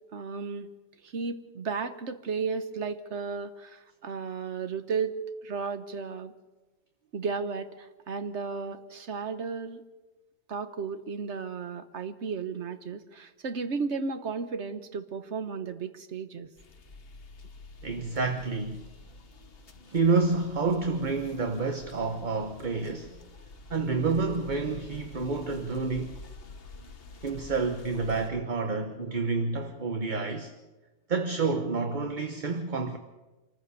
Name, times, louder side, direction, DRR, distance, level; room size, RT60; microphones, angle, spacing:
voice 1, 0.1-0.7 1.0-5.1 5.4-6.3 7.1-9.8 10.5-16.5, right 5 dB, 85° right, 1.4 m, -34 dB
sound 1, 16.6-28.3, left 3 dB, 60° left, 1.3 m, -48 dB
voice 2, 17.8-18.8 19.8-23.3 23.7-26.2 27.2-30.5 31.1-33.0, right 4 dB, 45° right, 1.3 m, -29 dB
25.5 x 15.0 x 6.9 m
omnidirectional pair, 1.2 m